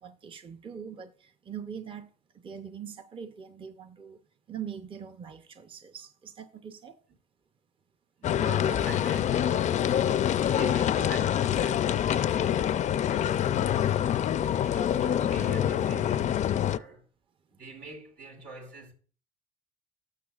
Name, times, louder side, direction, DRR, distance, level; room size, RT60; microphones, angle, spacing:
voice 1, 0.0-2.1 2.3-4.2 4.5-7.0 13.5-13.9, right 8 dB, 30° right, 0.7 m, -42 dB
sound 1, 8.2-16.8, left 10 dB, 45° left, 0.4 m, -26 dB
voice 2, 8.2-10.1 10.5-17.1 17.5-18.9, right 3 dB, 85° right, 2.6 m, -44 dB
sound 2, 9.6-15.8, right 4 dB, 70° right, 2.3 m, -51 dB
12.5 x 6.6 x 2.4 m
cardioid pair, 110°, 17 cm